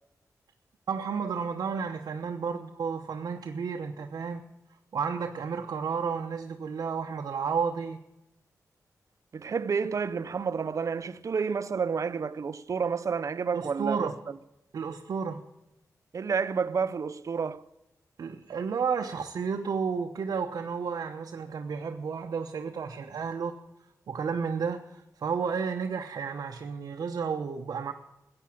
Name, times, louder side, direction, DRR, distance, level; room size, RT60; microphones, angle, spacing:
voice 1, 0.9-4.4 4.9-8.0 13.5-14.1 14.7-15.4 18.2-23.5 24.1-27.9, right 6 dB, 80° right, 0.9 m, -32 dB
voice 2, 9.3-14.4 16.1-17.6, right 5 dB, 55° right, 0.7 m, -30 dB
14.5 x 8.9 x 8.8 m
wide cardioid pair, 100°, 6 cm